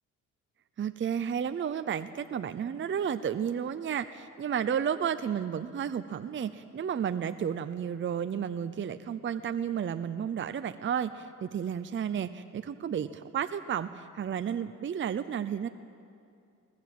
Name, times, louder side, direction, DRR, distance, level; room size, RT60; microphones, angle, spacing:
voice 1, 0.8-15.7, right 8 dB, 35° right, 11 dB, 0.7 m, -32 dB
21.5 x 19.5 x 7.7 m, 2.4 s
cardioid pair, 105°, 33 cm